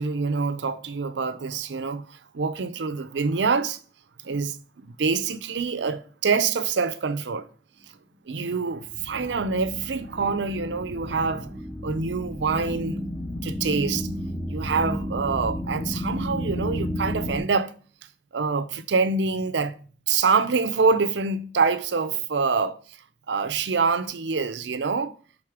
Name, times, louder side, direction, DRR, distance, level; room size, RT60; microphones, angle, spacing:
voice 1, 0.0-3.8 4.2-4.6 4.8-7.5 8.3-11.5 11.8-13.1 13.4-14.1 14.5-17.7 18.3-19.7 20.1-22.8 23.3-25.1, right 4 dB, 90° right, 0.6 m, -25 dB
sound 1, 8.8-17.4, left 1 dB, 15° left, 0.6 m, -32 dB
4.9 x 4.1 x 5.8 m
head